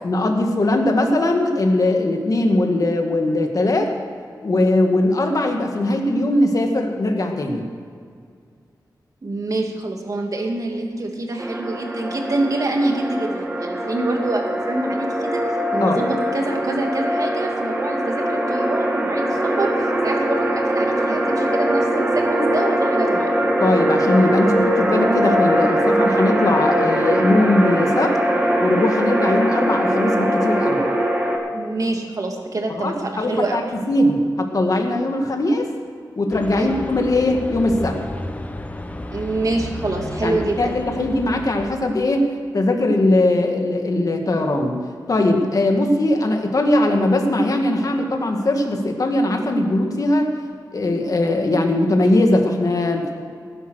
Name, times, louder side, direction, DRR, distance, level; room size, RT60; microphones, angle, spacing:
voice 1, 0.0-3.9 4.4-7.6 15.8-16.0 23.6-28.2 28.6-30.9 32.8-33.6 33.9-35.7 36.2-38.0 40.2-44.8 45.1-50.3 50.7-53.1, left 1 dB, 50° left, 3 dB, 2.1 m, -20 dB
voice 2, 9.2-23.3 31.5-33.6 36.5-36.7 39.1-40.7, right 2 dB, 50° right, 2 dB, 2.5 m, -26 dB
sound 1, 11.4-31.4, right 1 dB, 20° right, 2.2 m, -21 dB
sound 2, 36.3-41.7, left 1 dB, 20° left, 1.0 m, -32 dB
18.5 x 10.5 x 6.5 m, 2.2 s
wide cardioid pair, 115°, 8 cm